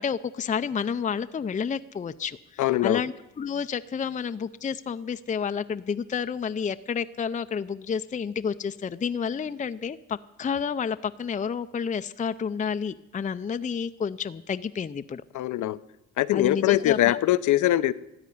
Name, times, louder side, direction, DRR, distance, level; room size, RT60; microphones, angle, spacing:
voice 1, 0.0-15.2 16.3-17.2, left 6 dB, 25° left, 10 dB, 0.5 m, -30 dB
voice 2, 2.6-3.0 15.3-15.8 16.2-17.9, left 14 dB, 75° left, 15 dB, 0.7 m, -22 dB
13.5 x 9.1 x 9.8 m, 0.95 s
cardioid pair, 90°, 30 cm